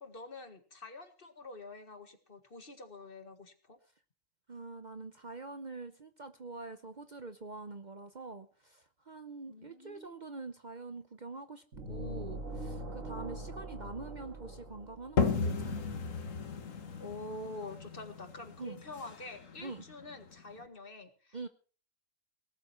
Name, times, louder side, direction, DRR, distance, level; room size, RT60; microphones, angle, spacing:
voice 1, 0.0-3.8 9.5-10.2 17.0-21.5, left 2 dB, 45° left, 8 dB, 2.0 m, -47 dB
voice 2, 4.5-15.8 18.6-18.8 19.6-19.8 21.3-21.5, right 3 dB, 40° right, 9 dB, 0.9 m, -45 dB
sound 1, 11.7-15.5, right 1 dB, 80° right, 2.6 m, -42 dB
sound 2, 15.2-20.6, left 5 dB, 90° left, 1.8 m, -35 dB
18.5 x 13.0 x 4.5 m, 0.39 s
omnidirectional pair, 1.3 m